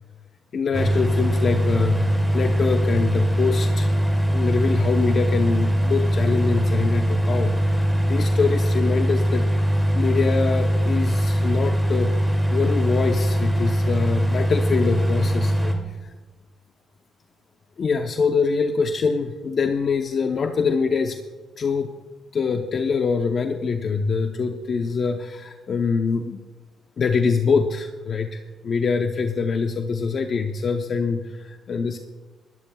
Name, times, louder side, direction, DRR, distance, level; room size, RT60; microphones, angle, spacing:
voice 1, 0.5-4.0 4.3-9.5 9.9-16.1 17.8-21.2 21.6-21.9 22.3-26.4 27.0-32.0, left 5 dB, 50° left, 5 dB, 0.8 m, -24 dB
sound 1, 0.7-15.7, equal, 10° right, 2.4 m, -21 dB
23.0 x 13.0 x 2.3 m, 1.3 s
cardioid pair, 90°, 0 cm